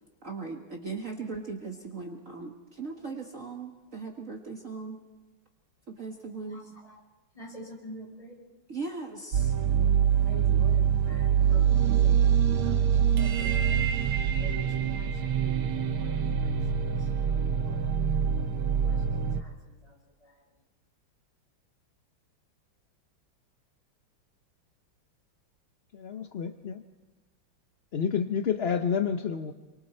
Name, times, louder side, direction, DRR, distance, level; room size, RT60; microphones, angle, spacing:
voice 1, 0.2-5.0 5.9-6.6 8.7-9.5, right 4 dB, 40° right, 1 dB, 1.8 m, -38 dB
voice 2, 6.4-7.0 7.3-8.4 10.2-12.3 12.6-13.8 14.4-17.9 18.6-20.5, left 1 dB, 15° left, -2 dB, 6.5 m, -48 dB
sound 1, 9.3-19.4, right 8 dB, 80° right, 1.8 m, -25 dB
voice 3, 25.9-26.8 27.9-29.5, left 7 dB, 60° left, 7 dB, 0.6 m, -29 dB
29.0 x 23.5 x 4.4 m, 1.2 s
omnidirectional pair, 2.2 m